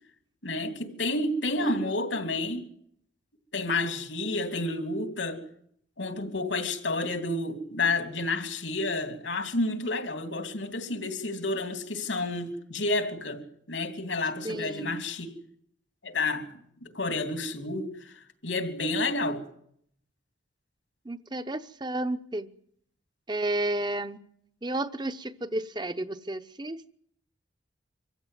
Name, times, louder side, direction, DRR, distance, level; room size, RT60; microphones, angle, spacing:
voice 1, 0.4-2.6 3.5-5.4 6.0-15.3 16.0-16.5 16.8-19.4, left 2 dB, 80° left, 3.0 m, -30 dB
voice 2, 1.6-2.0 14.4-15.0 21.0-22.5 23.3-24.2 24.6-26.9, right 1 dB, 25° right, 0.8 m, -32 dB
25.0 x 15.5 x 9.3 m
head